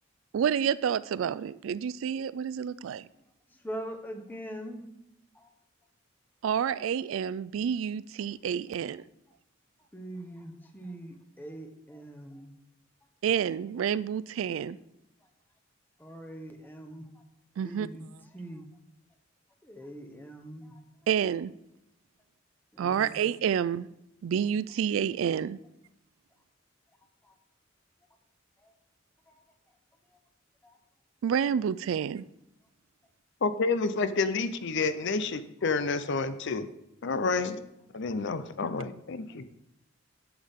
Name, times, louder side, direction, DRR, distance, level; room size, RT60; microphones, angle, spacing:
voice 1, 0.3-3.1 6.4-9.0 13.2-14.8 17.6-17.9 21.1-21.5 22.8-23.9 24.2-25.6 31.2-32.3, right 8 dB, 75° right, 18 dB, 0.3 m, -29 dB
voice 2, 3.5-4.9 5.3-5.5 9.9-12.5 15.2-15.3 16.0-17.2 17.6-18.6 19.6-20.8 22.7-23.2 27.2-27.4 28.6-28.7 29.3-29.4 30.1-30.2 30.6-30.8 38.0-38.1, right 1 dB, 10° left, 4 dB, 1.0 m, -43 dB
voice 3, 33.4-36.7 37.0-37.6 37.9-39.4, left 4 dB, 65° left, 12 dB, 0.6 m, -29 dB
11.0 x 7.2 x 3.7 m, 0.84 s
head